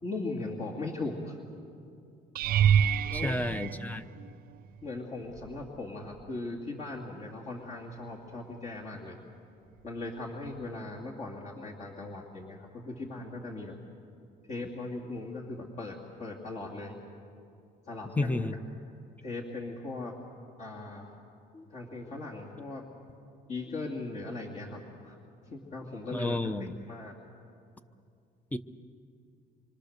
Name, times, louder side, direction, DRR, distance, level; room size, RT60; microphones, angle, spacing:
voice 1, 0.0-1.4 3.1-3.5 4.8-9.2 9.8-13.7 14.5-17.0 17.9-18.5 19.2-20.1 20.6-21.2 21.5-22.8 23.5-25.2 25.5-26.5 26.9-27.1, left 2 dB, 45° left, -3 dB, 2.7 m, -39 dB
sound 1, 2.4-4.6 5.3-5.8 6.1-6.3 10.6-10.7, right 9 dB, 60° right, 0.5 m, -27 dB
voice 2, 3.1-4.0 18.2-18.5 26.1-26.7 28.5-28.6, left 2 dB, 10° left, 11 dB, 0.9 m, -31 dB
26.5 x 25.0 x 6.7 m, 2.5 s
cardioid pair, 110°, 17 cm